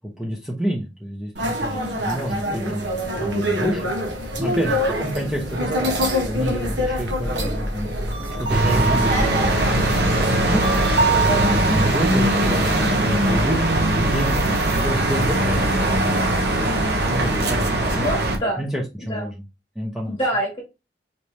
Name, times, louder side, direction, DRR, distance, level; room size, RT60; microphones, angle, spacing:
voice 1, 0.2-2.9 3.2-3.9 4.4-7.9 8.4-10.8 11.2-16.2 17.1-18.2 18.6-19.4 19.8-20.2, equal, 5° right, -3 dB, 0.7 m, -28 dB
sound 1, 1.4-12.9, right 1 dB, 75° right, 1.3 m, -25 dB
voice 2, 1.7-2.1 4.4-4.7 11.1-11.9 16.6-17.5 18.0-18.6 19.0-19.3 20.1-20.6, equal, 25° left, -3 dB, 1.4 m, -28 dB
Intercambiador Plaza Castilla, 8.5-18.4, right 1 dB, 60° right, 0.9 m, -20 dB
4.1 x 3.2 x 3.1 m, 0.25 s
head